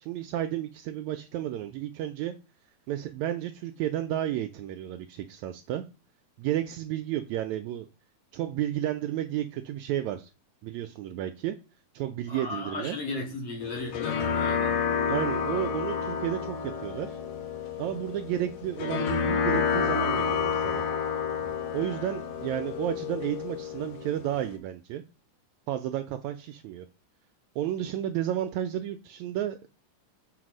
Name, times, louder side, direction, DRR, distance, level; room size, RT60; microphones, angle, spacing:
voice 1, 0.0-2.4 2.9-5.8 6.4-7.9 8.3-10.3 10.6-11.6 11.9-13.0 15.1-17.2 17.8-20.8 21.7-25.0 25.7-26.9 27.5-29.7, right 12 dB, 85° right, 1.6 m, -32 dB
voice 2, 12.3-14.8, left 3 dB, 50° left, 3.1 m, -36 dB
sound 1, 13.6-24.6, left 6 dB, 70° left, 2.0 m, -30 dB
6.6 x 4.8 x 6.3 m
omnidirectional pair, 3.8 m